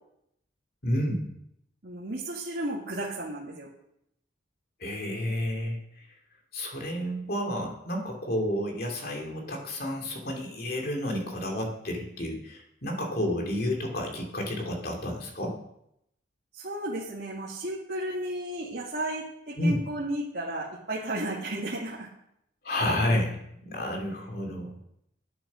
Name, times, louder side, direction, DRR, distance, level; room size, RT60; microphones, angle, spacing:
voice 1, 0.8-1.3 4.8-6.1 6.5-15.6 19.6-19.8 22.6-24.7, left 1 dB, 50° left, 1 dB, 2.6 m, -30 dB
voice 2, 1.8-3.7 16.5-22.1, right 1 dB, 55° right, -7 dB, 2.0 m, -33 dB
10.5 x 8.5 x 6.2 m, 0.78 s
head